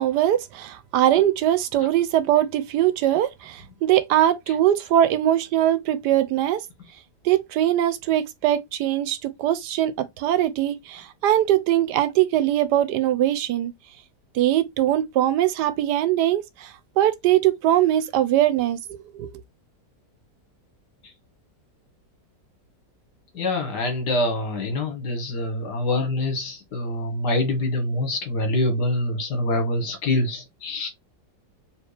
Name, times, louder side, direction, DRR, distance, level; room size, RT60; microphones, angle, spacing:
voice 1, 0.0-6.6 7.2-13.7 14.3-19.3, right 12 dB, 75° right, 1.2 m, -21 dB
voice 2, 23.3-30.9, left 1 dB, 70° left, 1.9 m, -25 dB
4.3 x 3.0 x 3.3 m
omnidirectional pair, 1.9 m